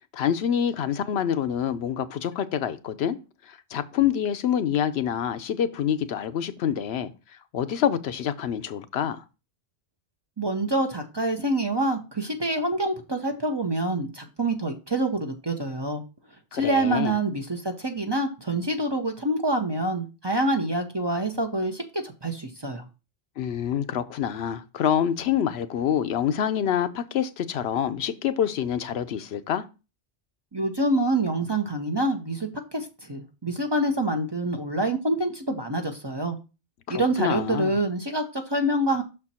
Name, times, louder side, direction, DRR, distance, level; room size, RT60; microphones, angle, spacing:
voice 1, 0.1-3.2 3.5-7.1 7.5-9.2 16.5-17.1 23.4-29.6 36.9-37.7, left 9 dB, 70° left, 0.8 m, -26 dB
voice 2, 10.4-16.0 16.5-22.8 30.5-36.4 36.9-39.0, right 1 dB, 25° right, 0.7 m, -26 dB
6.3 x 4.4 x 4.2 m
omnidirectional pair, 1.1 m